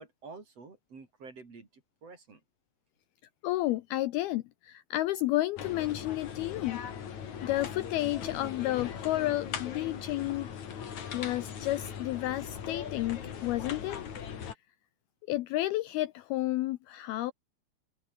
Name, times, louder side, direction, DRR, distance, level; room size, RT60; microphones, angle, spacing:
voice 1, 0.0-2.4, right 4 dB, 35° right, 4.9 m, -49 dB
voice 2, 3.4-6.8 7.4-10.5 11.1-14.1 15.3-17.3, left 16 dB, 85° left, 2.2 m, -31 dB
sound 1, 5.6-14.5, left 8 dB, 45° left, 3.3 m, -40 dB
open air
omnidirectional pair, 5.3 m